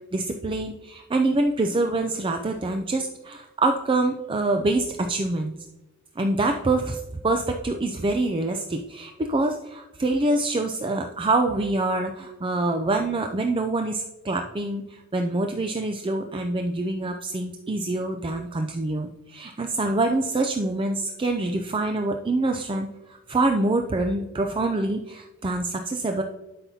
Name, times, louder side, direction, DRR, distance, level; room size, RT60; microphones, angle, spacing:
voice 1, 0.1-5.5 6.2-22.9 23.3-26.2, right 2 dB, 25° right, 4 dB, 0.5 m, -25 dB
12.0 x 5.8 x 2.8 m, 1.0 s
head